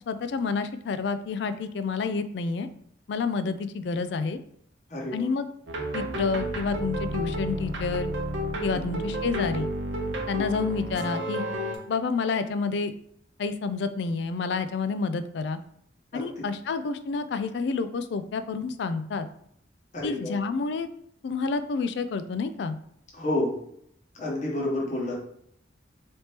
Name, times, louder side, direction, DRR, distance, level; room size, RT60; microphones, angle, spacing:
voice 1, 0.1-2.7 3.1-4.4 5.1-5.5 5.9-8.1 8.6-9.7 10.3-11.4 11.9-12.9 13.4-15.6 16.1-19.3 20.0-20.9 21.2-22.8, left 4 dB, 65° left, 10 dB, 0.3 m, -29 dB
voice 2, 4.9-5.3 8.7-9.0 16.1-16.2 19.9-20.3 23.1-23.5 24.1-25.2, left 1 dB, 40° left, -3 dB, 1.0 m, -29 dB
sound 1, 5.7-11.8, equal, 75° right, 0.8 m, -31 dB
4.3 x 3.4 x 2.9 m, 0.70 s
head